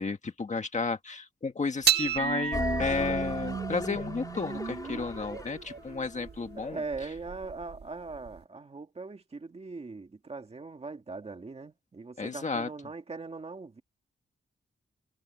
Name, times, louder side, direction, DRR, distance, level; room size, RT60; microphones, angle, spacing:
voice 1, 0.0-6.8 12.2-12.7, left 4 dB, 35° left, 1.6 m, -32 dB
sound 1, 1.8-8.4, right 8 dB, 55° right, 1.7 m, -33 dB
sound 2, 2.5-6.8, left 2 dB, 20° left, 2.9 m, -37 dB
voice 2, 6.5-13.8, right 3 dB, 30° right, 2.0 m, -40 dB
wide cardioid pair, 180°, 20 cm